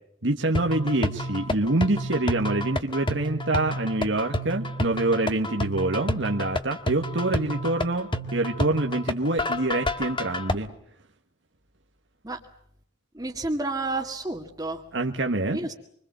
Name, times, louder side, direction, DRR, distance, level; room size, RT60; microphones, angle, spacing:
voice 1, 0.2-10.7 14.9-15.7, right 2 dB, 75° right, 3 dB, 1.7 m, -26 dB
sound 1, 0.5-10.5, left 1 dB, 25° left, 1.6 m, -29 dB
voice 2, 13.1-14.8 15.5-15.7, right 2 dB, 20° right, -2 dB, 2.1 m, -30 dB
26.0 x 25.5 x 7.6 m, 0.69 s
head